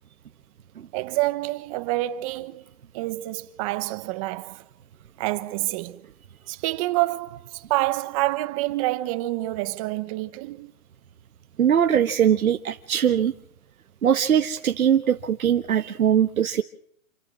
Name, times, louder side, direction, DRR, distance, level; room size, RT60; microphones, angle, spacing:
voice 1, 0.9-4.6 5.2-6.0 6.5-10.7, right 18 dB, 25° right, 1.0 m, -27 dB
voice 2, 11.6-13.3 14.0-16.6, right 9 dB, 75° right, 1.5 m, -21 dB
28.5 x 13.5 x 7.6 m
hypercardioid pair, 150°, 43 cm